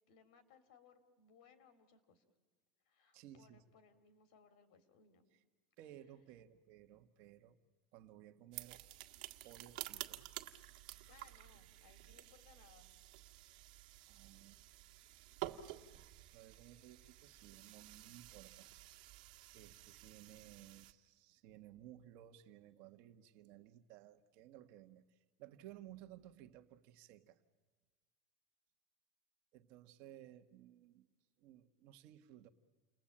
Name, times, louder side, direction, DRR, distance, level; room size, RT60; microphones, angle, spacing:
voice 1, 0.1-2.2 2.8-5.2 11.1-12.9, left 6 dB, 70° left, 10 dB, 3.2 m, -66 dB
voice 2, 3.1-3.6 5.3-5.4 5.8-7.6 7.9-8.8 9.4-10.3 14.1-14.6 16.3-18.8 19.5-27.4 29.5-31.1 31.4-32.5, right 12 dB, 55° right, 9 dB, 1.5 m, -58 dB
sound 1, 8.5-20.9, right 16 dB, 70° right, 1.8 m, -51 dB
30.0 x 21.5 x 8.8 m, 1.3 s
supercardioid pair, 160°, 4 cm